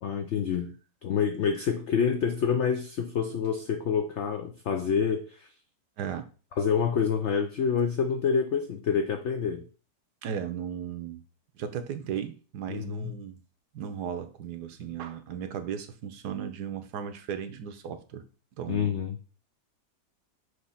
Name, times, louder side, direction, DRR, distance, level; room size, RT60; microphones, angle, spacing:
voice 1, 0.0-5.5 6.6-9.7 12.7-13.2 18.7-19.2, left 6 dB, 75° left, 7 dB, 0.6 m, -27 dB
voice 2, 6.0-6.3 10.2-11.2 11.5-13.4 13.7-18.2 18.6-18.9, right 8 dB, 70° right, 9 dB, 1.3 m, -36 dB
6.3 x 3.0 x 5.6 m, 0.37 s
omnidirectional pair, 1.8 m